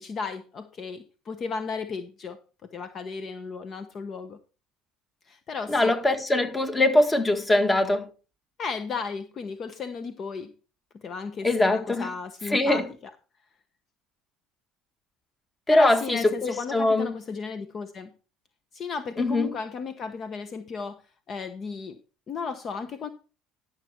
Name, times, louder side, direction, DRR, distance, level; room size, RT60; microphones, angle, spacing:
voice 1, 0.0-2.4 2.7-4.4 5.3-5.9 8.6-10.5 11.0-13.1 15.7-18.1 18.7-21.0 21.3-22.0 22.3-23.1, left 5 dB, 45° left, 0.9 m, -34 dB
voice 2, 5.7-8.1 11.4-12.1 12.5-12.8 15.7-17.1 19.2-19.5, left 2 dB, 20° left, 1.6 m, -22 dB
11.0 x 6.6 x 4.3 m
supercardioid pair, 85°, 0 cm